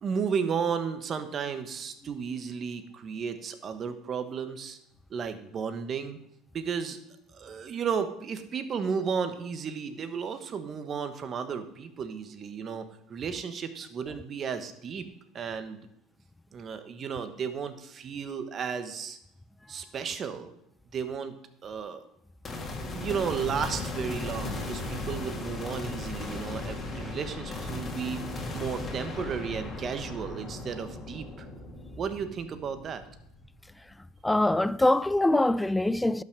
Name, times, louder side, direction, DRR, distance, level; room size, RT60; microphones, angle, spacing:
voice 1, 0.0-4.8 5.1-6.2 6.5-7.0 7.3-15.0 15.3-15.9 16.5-19.2 19.7-20.5 20.9-21.3 21.6-22.0 22.8-28.2 28.5-31.5 32.0-33.0, right 6 dB, 40° right, 1.4 m, -33 dB
sound 1, 22.4-33.8, left 2 dB, 30° left, 2.6 m, -37 dB
voice 2, 34.2-36.2, left 1 dB, 10° left, 0.4 m, -23 dB
11.5 x 6.1 x 6.7 m
supercardioid pair, 90°, 0 cm